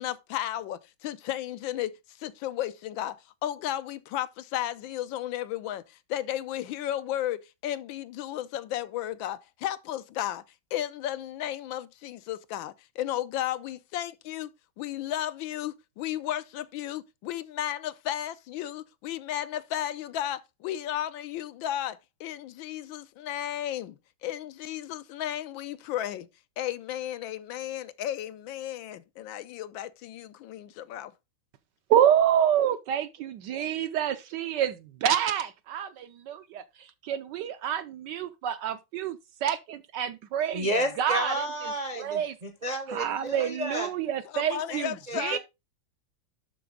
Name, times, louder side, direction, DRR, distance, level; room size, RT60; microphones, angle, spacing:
voice 1, 0.0-10.4 10.7-14.5 14.8-24.0 24.2-26.3 26.6-31.1 44.3-45.4, left 12 dB, 75° left, 1.3 m, -34 dB
voice 2, 31.9-40.7 41.0-41.3 41.6-42.3 42.9-45.4, right 10 dB, 70° right, 1.1 m, -28 dB
voice 3, 40.5-43.9 44.7-45.4, equal, 40° right, 0.5 m, -32 dB
11.5 x 4.2 x 3.7 m
omnidirectional pair, 2.2 m